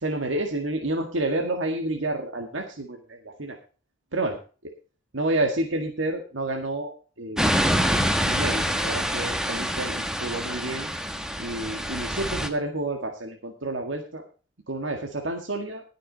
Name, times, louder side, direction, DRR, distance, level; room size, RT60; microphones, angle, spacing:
voice 1, 0.0-3.6 4.1-4.4 5.1-6.9 7.2-7.5 8.2-10.9 11.4-14.2 14.7-15.8, right 2 dB, 85° right, 2 dB, 1.8 m, -29 dB
sound 1, 7.4-12.5, equal, 5° right, 1.2 m, -26 dB
19.5 x 6.6 x 4.0 m, 0.35 s
head